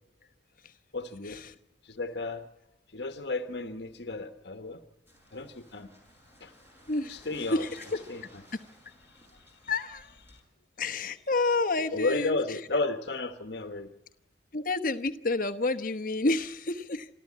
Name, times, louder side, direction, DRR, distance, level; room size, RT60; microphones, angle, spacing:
voice 1, 0.9-1.4 1.8-2.4 2.9-4.8 5.3-5.9 6.4-6.5 7.1-7.6 8.1-8.2 10.3-10.4 11.9-13.9, left 3 dB, 65° left, 8 dB, 1.3 m, -33 dB
sound 1, 5.1-10.4, equal, 10° right, 6.4 m, -56 dB
voice 2, 6.9-7.2 7.5-7.8 8.5-8.6 9.7-10.1 10.8-12.4 14.5-17.1, left 3 dB, 45° left, 9 dB, 1.1 m, -29 dB
28.0 x 13.0 x 8.6 m, 0.87 s
head